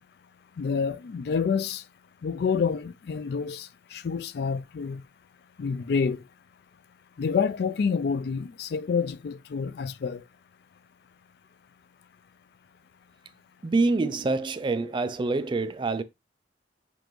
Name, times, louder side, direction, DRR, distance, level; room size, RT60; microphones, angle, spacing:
voice 1, 0.6-1.8 2.2-5.0 5.6-6.2 7.2-10.2, left 6 dB, 60° left, 0.4 m, -28 dB
voice 2, 13.6-16.0, right 3 dB, 25° right, 0.3 m, -26 dB
6.9 x 2.6 x 3.0 m
head